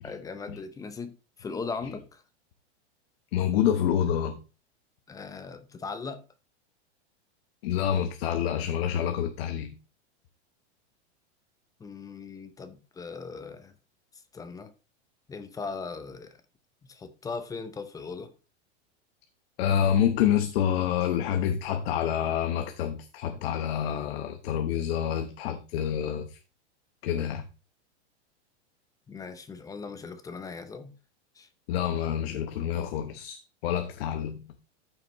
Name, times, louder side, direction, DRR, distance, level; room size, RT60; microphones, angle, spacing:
voice 1, 0.0-2.2 5.1-6.2 11.8-13.7 14.3-14.7 15.3-16.4 16.9-18.3 29.1-30.9 31.4-31.5, left 4 dB, 10° left, 0.7 m, -39 dB
voice 2, 3.3-4.4 7.6-9.7 19.6-26.4 27.0-27.5 31.7-34.5, left 9 dB, 60° left, 1.1 m, -27 dB
13.5 x 5.8 x 3.1 m
supercardioid pair, 145°, 35 cm